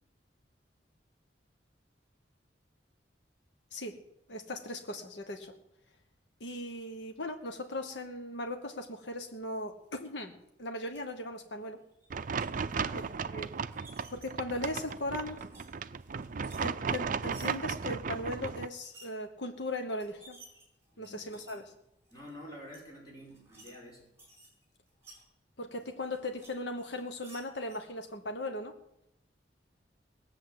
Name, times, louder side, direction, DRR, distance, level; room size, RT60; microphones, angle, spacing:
voice 1, 4.3-5.5 6.4-10.3 10.6-11.8 12.9-13.5 14.1-15.4 16.6-20.4 21.0-21.7 25.6-28.7, left 1 dB, 70° left, 5 dB, 1.2 m, -38 dB
sound 1, 10.8-11.0 11.9-12.4 13.4-14.3 14.7-15.7 16.0-17.5 18.7-19.1 19.7-19.8 20.0-21.6 22.1-22.3 22.7-22.8 23.2-23.7 24.0-25.2 25.8-26.5 26.8-27.8, right 2 dB, 15° right, 5.5 m, -55 dB
sound 2, 12.1-18.7, right 5 dB, 50° right, 0.5 m, -35 dB
voice 2, 12.7-13.2 20.9-21.6 22.1-24.0, equal, 20° left, -3 dB, 5.1 m, -49 dB
19.0 x 7.5 x 7.8 m, 0.84 s
head